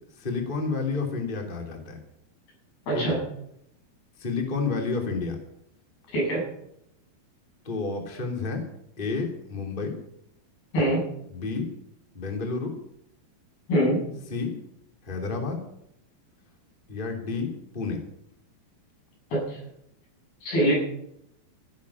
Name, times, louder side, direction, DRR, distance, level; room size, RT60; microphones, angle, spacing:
voice 1, 0.1-2.0 2.9-3.2 4.2-5.4 7.6-8.6 9.0-10.0 11.3-11.7 12.1-12.7 14.3-14.5 15.0-15.6 16.9-18.0, left 4 dB, 15° left, 3 dB, 2.6 m, -30 dB
voice 2, 2.9-3.2 6.1-6.4 10.7-11.0 13.7-14.0 20.4-20.8, right 1 dB, 75° left, -3 dB, 9.8 m, -23 dB
15.0 x 10.5 x 8.6 m, 0.75 s
omnidirectional pair, 4.4 m